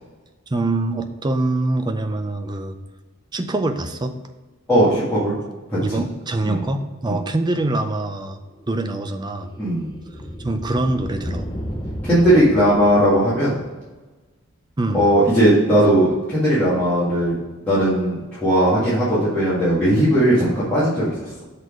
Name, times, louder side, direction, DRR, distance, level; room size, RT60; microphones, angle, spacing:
voice 1, 0.5-2.8 3.3-4.1 5.8-8.4 8.7-9.5 10.4-11.5 14.8-15.0, right 2 dB, 20° right, 7 dB, 0.5 m, -24 dB
voice 2, 4.7-5.3 6.4-6.6 7.0-7.1 9.6-9.9 12.0-13.6 14.9-17.4 17.7-21.4, right 1 dB, 10° left, -12 dB, 2.0 m, -18 dB
sound 1, 8.3-13.9, equal, 25° left, 0.9 m, -34 dB
6.4 x 4.1 x 4.9 m, 1.2 s
head